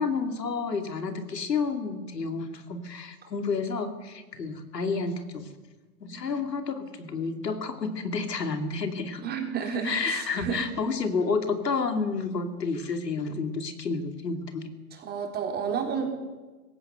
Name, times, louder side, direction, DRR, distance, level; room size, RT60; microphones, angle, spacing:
voice 1, 0.0-5.5 6.0-9.2 9.8-14.7, left 4 dB, 80° left, 7 dB, 2.8 m, -30 dB
voice 2, 9.2-10.6 14.9-16.1, right 6 dB, 20° right, 3 dB, 3.7 m, -31 dB
20.0 x 16.5 x 8.0 m, 1.2 s
hypercardioid pair, 125°, 48 cm